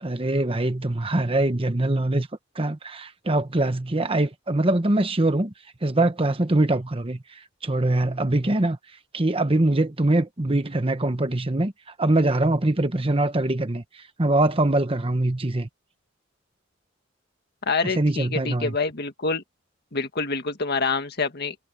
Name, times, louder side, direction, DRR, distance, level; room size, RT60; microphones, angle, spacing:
voice 1, 0.0-2.3 2.5-5.5 5.8-8.8 9.1-11.7 12.0-15.7 17.8-18.8, right 2 dB, 25° right, 1.1 m, -23 dB
voice 2, 17.6-19.4 19.9-21.6, left 4 dB, 50° left, 1.8 m, -26 dB
head